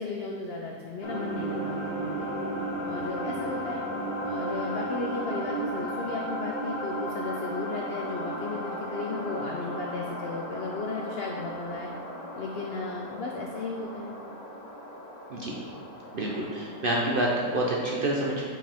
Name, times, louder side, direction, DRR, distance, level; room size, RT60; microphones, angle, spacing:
voice 1, 0.0-2.3 2.8-3.8 4.2-11.9 12.4-14.1, left 3 dB, 90° left, 0 dB, 0.5 m, -35 dB
sound 1, 1.0-17.8, right 1 dB, 35° left, 0.7 m, -35 dB
voice 2, 16.1-18.5, right 1 dB, 55° right, -3 dB, 0.6 m, -28 dB
5.9 x 5.0 x 3.5 m, 2.2 s
omnidirectional pair, 1.7 m